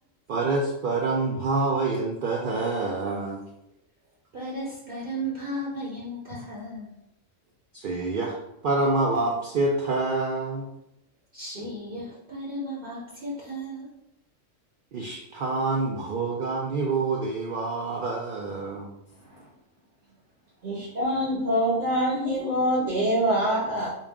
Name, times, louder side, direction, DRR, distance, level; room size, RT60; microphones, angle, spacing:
voice 1, 0.3-3.4 7.7-8.4 8.6-10.7 14.9-19.0, right 3 dB, 65° right, 0 dB, 0.5 m, -27 dB
voice 2, 4.3-6.9 11.3-13.9, right 1 dB, 45° right, -5 dB, 1.0 m, -35 dB
voice 3, 20.6-23.9, equal, 80° right, -7 dB, 1.6 m, -25 dB
4.1 x 2.4 x 3.4 m, 0.82 s
omnidirectional pair, 1.4 m